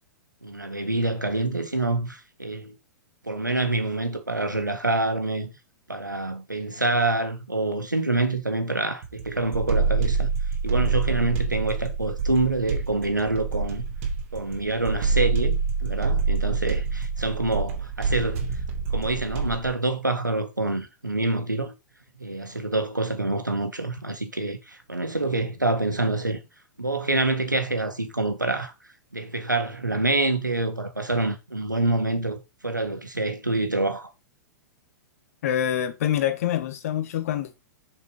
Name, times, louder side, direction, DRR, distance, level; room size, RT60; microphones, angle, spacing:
voice 1, 0.4-2.7 3.2-5.5 5.9-10.3 10.6-13.8 14.3-18.6 18.9-21.7 22.2-26.4 26.8-28.7 29.1-34.1, right 2 dB, 85° right, 1.7 m, -26 dB
sound 1, 9.0-19.7, right 5 dB, 45° right, 2.7 m, -26 dB
voice 2, 35.4-37.6, left 10 dB, 50° left, 1.5 m, -26 dB
6.9 x 5.4 x 4.9 m
figure-of-eight pair, 105°, 10 cm